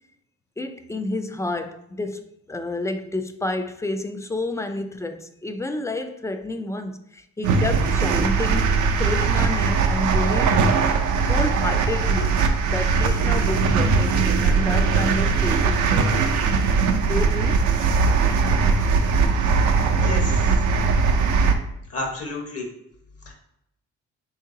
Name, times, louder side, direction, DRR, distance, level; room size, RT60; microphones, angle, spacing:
voice 1, 0.6-10.8 11.3-12.4 12.7-16.2 17.1-17.6, left 2 dB, 10° left, 0.3 m, -30 dB
sound 1, 7.4-21.5, right 4 dB, 75° right, 0.6 m, -20 dB
voice 2, 19.9-20.4 21.9-22.7 23.2-23.3, left 2 dB, 50° left, 1.1 m, -31 dB
3.6 x 2.7 x 3.7 m
cardioid pair, 90°, 30 cm